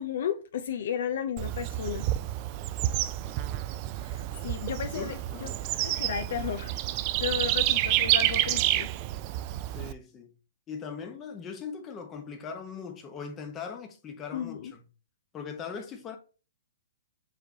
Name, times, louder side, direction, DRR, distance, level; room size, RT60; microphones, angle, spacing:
voice 1, 0.0-2.1 4.0-5.1 5.4-5.5 5.8-6.7 7.2-8.9 14.3-14.7, left 8 dB, 65° left, 0.4 m, -33 dB
Bird / Insect, 1.4-9.9, right 14 dB, 35° right, 0.3 m, -29 dB
voice 2, 2.9-3.4 4.9-5.6 9.7-10.3 10.7-14.8 15.3-16.2, left 6 dB, 20° left, 0.9 m, -40 dB
4.8 x 3.2 x 2.7 m
hypercardioid pair, 140°, 0 cm